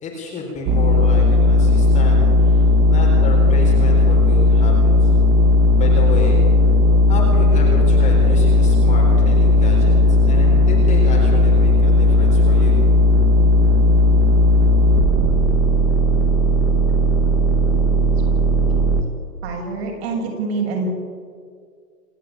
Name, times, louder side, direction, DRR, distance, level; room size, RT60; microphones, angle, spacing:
voice 1, 0.0-5.1 5.7-6.5 7.1-12.8, left 3 dB, 15° left, -2 dB, 4.1 m, -30 dB
sound 1, 0.7-19.0, left 2 dB, 20° right, 1.6 m, -15 dB
voice 2, 19.4-20.9, right 4 dB, 40° right, 0 dB, 7.3 m, -25 dB
28.0 x 13.0 x 9.1 m, 2.1 s
hypercardioid pair, 145°, 48 cm